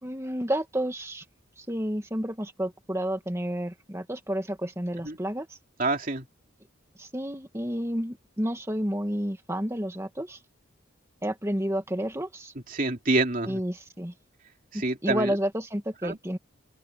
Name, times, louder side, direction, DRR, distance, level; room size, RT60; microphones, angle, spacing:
voice 1, 0.0-1.2 1.6-5.6 7.0-10.4 11.2-12.5 13.5-14.1 14.7-16.4, equal, 15° right, 2.0 m, -30 dB
voice 2, 5.8-6.3 12.7-13.6 14.7-15.4 16.0-16.2, right 2 dB, 40° right, 3.1 m, -27 dB
head